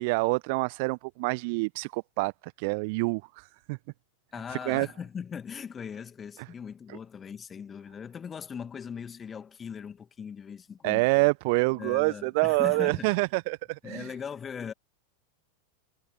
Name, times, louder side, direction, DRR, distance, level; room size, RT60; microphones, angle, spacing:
voice 1, 0.0-3.8 4.5-4.9 6.9-7.0 10.8-14.1, right 29 dB, 45° right, 0.9 m, -27 dB
voice 2, 4.3-11.1 11.7-13.1 13.8-14.7, left 7 dB, 20° left, 2.2 m, -39 dB
figure-of-eight pair, 90°, 0 cm